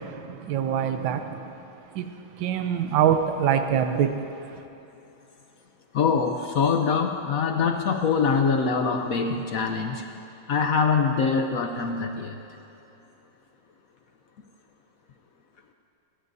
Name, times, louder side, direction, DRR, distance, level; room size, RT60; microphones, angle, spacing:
voice 1, 0.0-1.5 1.9-2.1 2.4-4.2, right 8 dB, 70° right, 1.5 m, -24 dB
voice 2, 5.9-10.1 10.5-12.4, left 5 dB, 65° left, 0.8 m, -24 dB
21.0 x 17.0 x 2.7 m
omnidirectional pair, 2.3 m